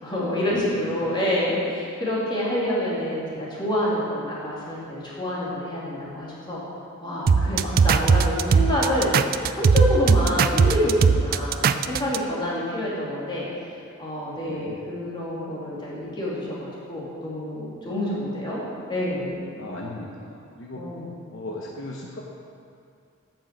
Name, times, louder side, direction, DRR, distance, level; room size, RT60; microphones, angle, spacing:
voice 1, 0.0-6.6 7.0-18.6 18.9-19.4 20.8-21.1, left 1 dB, 25° left, -7 dB, 2.6 m, -27 dB
sound 1, 7.3-12.2, right 5 dB, 45° right, 0.3 m, -18 dB
voice 2, 14.5-14.8 19.6-20.8 21.3-22.2, left 2 dB, 65° left, -2 dB, 1.0 m, -37 dB
9.0 x 6.2 x 7.3 m, 2.4 s
head